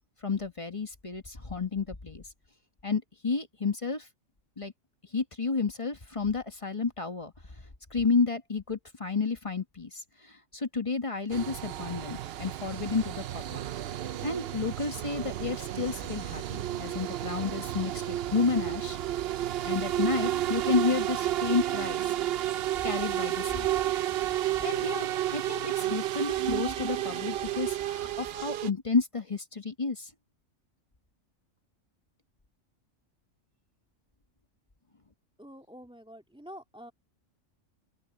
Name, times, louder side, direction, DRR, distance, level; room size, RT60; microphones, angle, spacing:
voice 1, 0.2-2.2 2.8-4.1 4.6-4.7 5.1-7.3 7.9-13.6 14.2-19.0 19.6-22.1 22.8-23.7 24.6-30.1, left 4 dB, 25° left, 1.3 m, -31 dB
sound 1, 11.3-28.7, right 12 dB, 60° right, 0.7 m, -31 dB
voice 2, 35.4-36.9, equal, 5° right, 2.5 m, -47 dB
open air
omnidirectional pair, 1.4 m